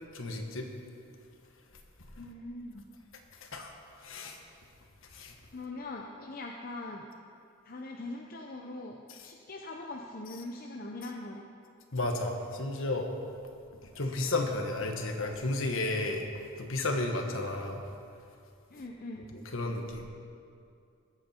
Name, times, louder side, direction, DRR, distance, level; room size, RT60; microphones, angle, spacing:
voice 1, 0.1-0.7 3.4-3.7 4.0-4.4 5.1-5.3 9.1-9.2 11.9-13.1 13.8-16.2 16.6-17.8 19.5-20.0, left 2 dB, 60° left, 3 dB, 1.5 m, -32 dB
voice 2, 2.2-2.9 5.5-7.1 7.6-11.4 18.7-19.3, left 2 dB, 40° left, 0 dB, 0.7 m, -42 dB
21.0 x 9.0 x 4.5 m, 2.5 s
head